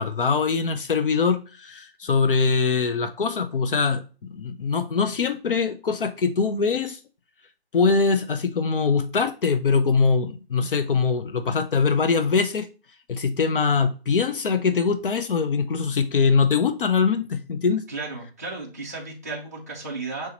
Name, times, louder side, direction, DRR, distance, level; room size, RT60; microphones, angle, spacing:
voice 1, 0.0-7.0 7.7-12.7 13.1-17.8, left 5 dB, 60° left, 0.5 m, -22 dB
voice 2, 17.9-20.3, right 3 dB, 15° right, 0.3 m, -34 dB
5.5 x 3.0 x 3.0 m
figure-of-eight pair, 155°, 31 cm